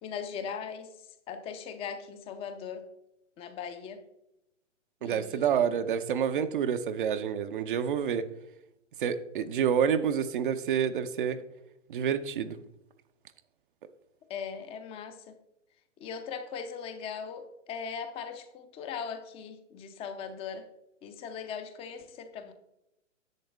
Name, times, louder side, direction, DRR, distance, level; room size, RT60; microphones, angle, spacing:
voice 1, 0.0-2.9 3.4-4.0 5.0-5.8 14.3-15.3 16.0-20.7 21.0-22.5, left 6 dB, 15° left, 9 dB, 0.6 m, -39 dB
voice 2, 5.0-8.3 9.0-11.4 11.9-12.6, right 8 dB, 45° right, 9 dB, 0.6 m, -28 dB
10.5 x 7.6 x 3.3 m, 0.86 s
figure-of-eight pair, 120°, 38 cm